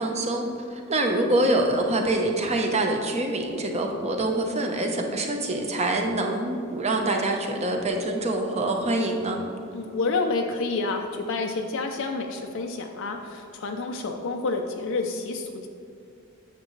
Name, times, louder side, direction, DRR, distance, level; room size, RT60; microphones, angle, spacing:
voice 1, 0.0-9.4, right 1 dB, 30° right, 2 dB, 0.9 m, -25 dB
voice 2, 9.7-15.7, left 3 dB, 65° left, 3 dB, 0.5 m, -29 dB
9.2 x 6.7 x 3.2 m, 2.6 s
head